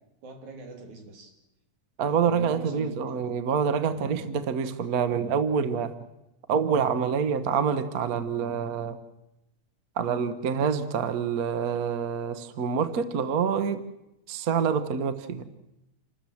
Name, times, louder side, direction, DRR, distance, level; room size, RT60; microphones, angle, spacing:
voice 1, 0.2-1.3 2.0-3.3 3.9-4.2, right 3 dB, 80° right, 3 dB, 4.2 m, -43 dB
voice 2, 2.0-5.9 6.5-9.0 10.0-13.8 14.3-15.5, right 6 dB, 60° right, 11 dB, 0.9 m, -26 dB
28.5 x 13.0 x 7.8 m, 0.90 s
omnidirectional pair, 3.3 m